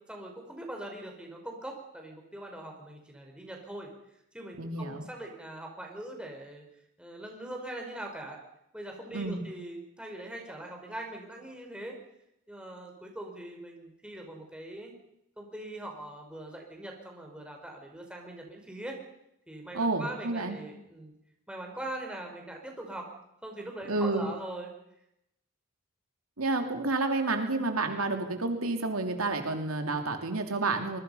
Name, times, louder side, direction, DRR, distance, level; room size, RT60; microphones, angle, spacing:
voice 1, 0.1-3.9 4.3-6.6 7.0-8.4 8.7-12.0 12.5-14.9 15.4-19.0 19.5-21.1 21.5-23.1 23.4-24.7, right 1 dB, 5° right, 1 dB, 4.7 m, -41 dB
voice 2, 4.6-5.0 9.1-9.4 19.7-20.6 23.9-24.3 26.4-31.0, right 3 dB, 80° right, 4 dB, 2.9 m, -30 dB
25.5 x 21.5 x 5.6 m, 0.82 s
head